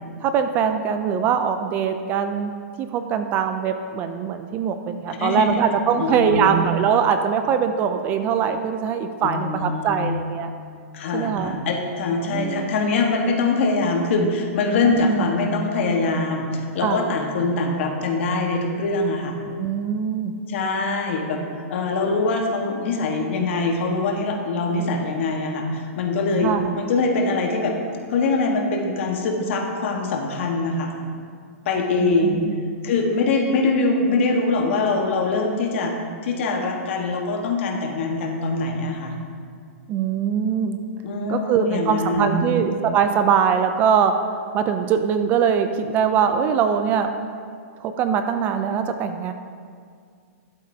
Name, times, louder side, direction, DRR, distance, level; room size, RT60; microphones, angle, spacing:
voice 1, 0.2-2.5 2.8-10.5 11.1-11.6 12.3-12.7 14.8-15.3 16.8-17.1 19.6-20.3 26.4-26.7 32.0-32.5 39.9-40.8 41.3-44.1 44.5-47.1 47.8-49.3, right 7 dB, 25° right, 8 dB, 0.3 m, -22 dB
voice 2, 5.2-6.6 9.2-10.1 10.9-16.5 16.7-19.3 20.5-21.4 21.7-27.8 28.1-30.9 31.6-32.4 32.8-35.9 36.2-39.1 41.0-42.7, left 3 dB, 55° left, 2 dB, 1.3 m, -23 dB
11.5 x 7.8 x 2.7 m, 2.1 s
hypercardioid pair, 160°, 8 cm